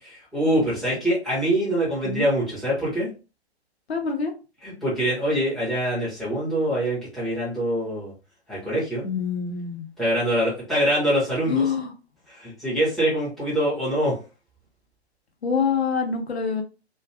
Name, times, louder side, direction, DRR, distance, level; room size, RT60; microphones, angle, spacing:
voice 1, 0.0-3.1 4.6-8.1 8.5-9.0 10.0-11.6 12.3-14.2, equal, ahead, -8 dB, 0.5 m, -24 dB
voice 2, 3.9-4.3 9.0-9.9 11.5-11.9 15.4-16.6, left 6 dB, 70° left, 3 dB, 0.8 m, -25 dB
2.5 x 2.2 x 2.6 m, 0.32 s
figure-of-eight pair, 125°, 33 cm